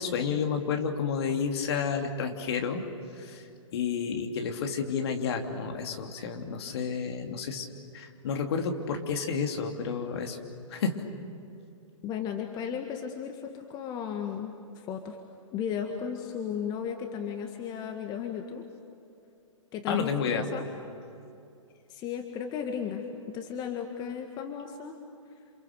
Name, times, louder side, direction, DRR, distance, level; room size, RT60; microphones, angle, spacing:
voice 1, 0.0-2.8 3.2-3.4 3.7-7.6 7.9-10.4 10.7-11.0 19.9-20.5, left 6 dB, 50° left, 3 dB, 2.9 m, -30 dB
voice 2, 12.0-15.2 15.5-18.6 19.7-20.6 21.9-25.0, left 8 dB, 25° left, 4 dB, 1.8 m, -35 dB
28.5 x 28.0 x 6.8 m, 2.6 s
figure-of-eight pair, 120°, 17 cm